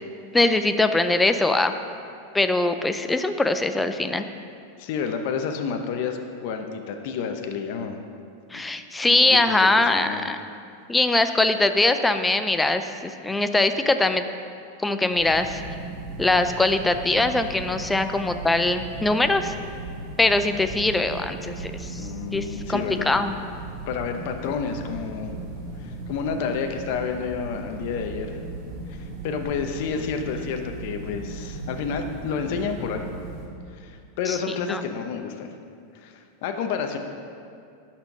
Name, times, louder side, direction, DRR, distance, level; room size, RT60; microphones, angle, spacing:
voice 1, 0.3-1.7 2.3-4.3 8.5-10.4 10.9-14.2 14.8-15.6 16.2-19.5 20.2-22.0 22.3-23.4 34.3-34.4 34.7-34.8, left 2 dB, 5° left, 9 dB, 0.3 m, -22 dB
voice 2, 4.8-8.0 8.5-8.6 9.1-10.3 22.0-23.2 23.9-25.3 25.8-28.3 28.9-33.2 33.8-35.5 35.9-37.0, left 6 dB, 50° left, 5 dB, 0.8 m, -30 dB
sound 1, 15.1-33.5, right 2 dB, 40° right, 2.1 m, -37 dB
11.5 x 4.4 x 5.9 m, 2.4 s
supercardioid pair, 160°, 0 cm